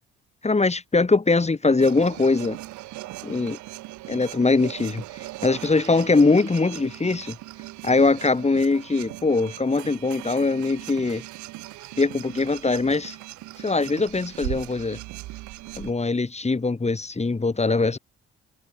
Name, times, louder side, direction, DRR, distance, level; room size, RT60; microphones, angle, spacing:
voice 1, 0.4-2.6 3.2-3.6 4.1-5.0 5.4-7.4 7.8-11.2 12.0-13.2 13.6-15.0 15.8-18.0, left 3 dB, 20° left, 1.7 m, -22 dB
sound 1, 1.8-15.9, right 19 dB, 80° right, 3.2 m, -39 dB
supercardioid pair, 55°, 29 cm